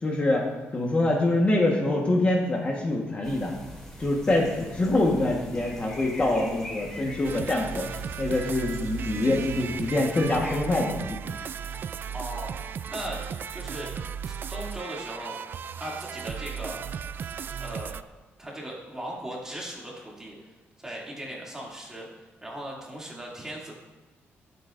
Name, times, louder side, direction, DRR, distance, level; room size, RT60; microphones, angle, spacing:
voice 1, 0.0-3.5 4.0-7.8 8.2-11.2, left 2 dB, 30° left, -1 dB, 1.4 m, -25 dB
sound 1, 3.2-10.6, left 1 dB, 10° left, 2.8 m, -43 dB
sound 2, 7.2-18.0, right 7 dB, 50° right, 0.3 m, -36 dB
voice 2, 12.1-12.5 12.9-13.2 13.5-13.9 14.2-15.4 15.7-16.8 17.6-18.0 18.4-20.4 20.8-22.1 22.4-23.7, right 1 dB, 10° right, -4 dB, 2.7 m, -38 dB
19.0 x 8.0 x 2.6 m, 1.2 s
cardioid pair, 135°, 5 cm